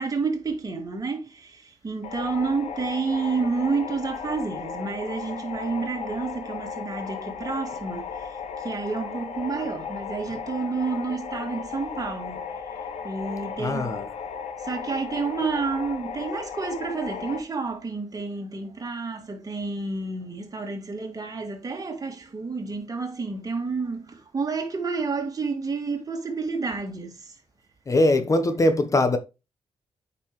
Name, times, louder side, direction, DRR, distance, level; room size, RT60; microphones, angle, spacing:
voice 1, 0.0-12.4 12.7-14.0 14.6-27.4, right 4 dB, 35° right, 2.3 m, -30 dB
sound 1, 2.0-17.4, left 6 dB, 85° left, 1.4 m, -35 dB
voice 2, 13.6-14.1 27.9-29.2, left 1 dB, 30° left, 1.0 m, -21 dB
8.9 x 5.6 x 3.1 m
cardioid pair, 105°, 11 cm